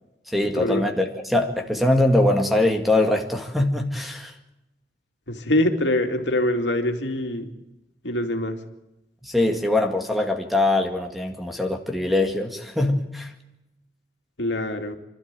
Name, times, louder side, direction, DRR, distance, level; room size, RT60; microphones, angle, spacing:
voice 1, 0.3-4.3 9.2-13.3, left 1 dB, ahead, 4 dB, 2.0 m, -22 dB
voice 2, 5.3-7.5 8.0-8.6 14.4-15.0, left 1 dB, 85° left, 4 dB, 2.6 m, -24 dB
29.0 x 12.5 x 9.0 m, 0.94 s
head